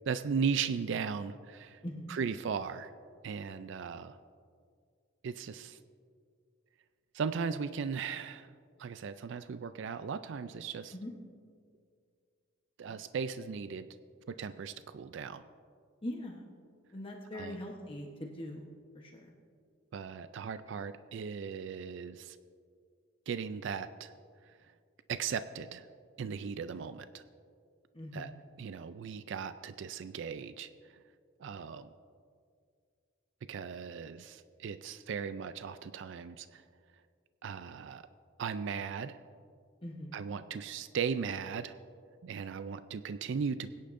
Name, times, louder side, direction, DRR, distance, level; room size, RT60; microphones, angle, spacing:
voice 1, 0.1-1.8 2.1-2.9 3.2-4.2 5.2-5.8 7.1-8.5 8.8-10.9 12.8-13.9 14.3-15.4 17.3-17.6 19.9-22.4 23.3-24.1 24.5-24.6 25.1-25.9 26.2-27.2 28.1-28.3 28.6-30.7 31.4-31.9 33.5-36.6 37.4-38.0 38.4-39.2 40.1-41.8 42.2-43.7, right 6 dB, 65° right, 12 dB, 0.4 m, -37 dB
voice 2, 1.8-2.2 10.9-11.1 16.0-16.5 16.9-18.7 18.9-19.3 27.9-28.3 39.8-40.1, left 1 dB, 25° left, 0 dB, 1.0 m, -42 dB
22.0 x 10.0 x 2.6 m, 2.2 s
head